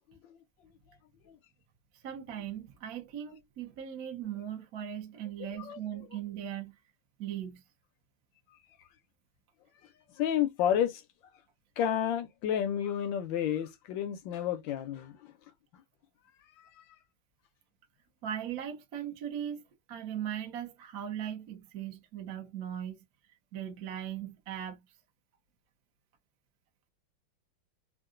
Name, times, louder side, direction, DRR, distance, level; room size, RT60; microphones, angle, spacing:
voice 1, 1.9-6.7 7.2-7.6 18.2-19.6 19.9-23.0 23.5-24.8, right 10 dB, 55° right, 1.1 m, -39 dB
voice 2, 10.2-11.0 11.8-15.3 15.7-15.8 16.6-16.8, left 10 dB, 75° left, 1.2 m, -31 dB
3.7 x 2.3 x 2.4 m
omnidirectional pair, 2.3 m